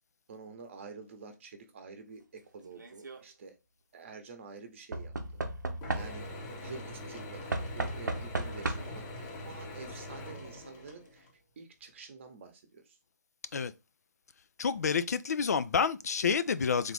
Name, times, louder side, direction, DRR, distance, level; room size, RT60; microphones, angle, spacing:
voice 1, 0.3-3.5 3.9-5.1 5.9-6.2 6.6-11.3 11.6-13.0, right 4 dB, 40° right, 0.9 m, -48 dB
Knock / Wood, 2.7-3.2 4.9-6.5 7.5-9.1 10.1-10.2 10.5-10.6, right 2 dB, 80° right, 0.7 m, -35 dB
Mechanisms / Drill, 5.8-11.3, left 1 dB, 20° left, 0.8 m, -43 dB
voice 2, 14.6-16.9, left 6 dB, 60° left, 0.4 m, -29 dB
3.6 x 2.5 x 3.3 m
figure-of-eight pair, 145°, 10 cm